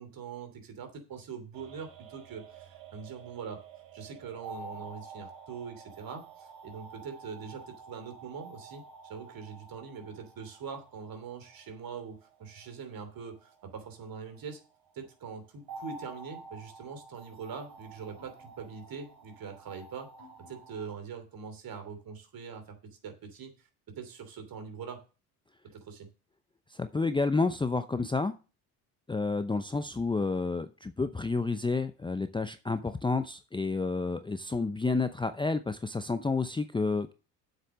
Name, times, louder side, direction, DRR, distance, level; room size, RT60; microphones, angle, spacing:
voice 1, 0.0-3.6 3.9-14.6 14.9-20.1 20.4-22.8 23.0-23.5 24.0-25.0 25.7-26.1, right 6 dB, 45° right, 7 dB, 3.0 m, -43 dB
sound 1, 1.5-14.9 15.7-20.9, right 4 dB, 65° right, 4.4 m, -49 dB
voice 2, 26.7-28.3 29.1-37.1, left 3 dB, 10° left, 10 dB, 0.6 m, -30 dB
7.7 x 6.8 x 6.2 m, 0.34 s
hypercardioid pair, 70°, 46 cm